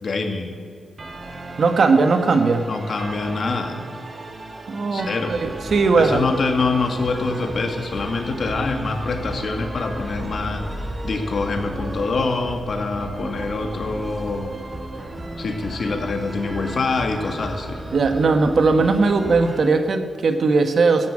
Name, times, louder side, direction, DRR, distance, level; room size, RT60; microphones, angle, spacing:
voice 1, 0.0-0.6 2.7-3.8 4.9-5.3 5.9-14.5 15.4-17.8, left 3 dB, 60° left, 5 dB, 2.0 m, -25 dB
sound 1, 1.0-19.6, right 2 dB, 40° right, 2.0 m, -37 dB
voice 2, 1.6-2.7 4.7-6.3 17.9-21.1, right 4 dB, 65° right, 7 dB, 1.4 m, -18 dB
sound 2, 5.3-19.7, equal, 5° right, 1.5 m, -36 dB
13.5 x 10.5 x 8.8 m, 2.3 s
cardioid pair, 75°, 0 cm